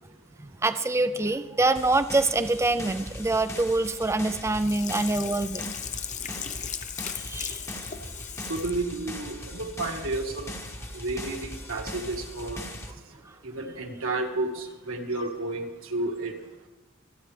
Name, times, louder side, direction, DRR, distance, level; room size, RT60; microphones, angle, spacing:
voice 1, 0.4-5.7 7.1-7.6, right 2 dB, 15° right, 11 dB, 0.4 m, -25 dB
sound 1, 1.7-12.9, left 1 dB, 15° left, 1.0 m, -40 dB
Sink (filling or washing), 4.6-8.8 9.2-9.3, left 8 dB, 35° left, 0.6 m, -37 dB
voice 2, 8.5-10.5 10.9-12.6 13.4-16.3, right 2 dB, 75° right, 2 dB, 1.7 m, -31 dB
25.5 x 9.0 x 3.3 m, 1.1 s
head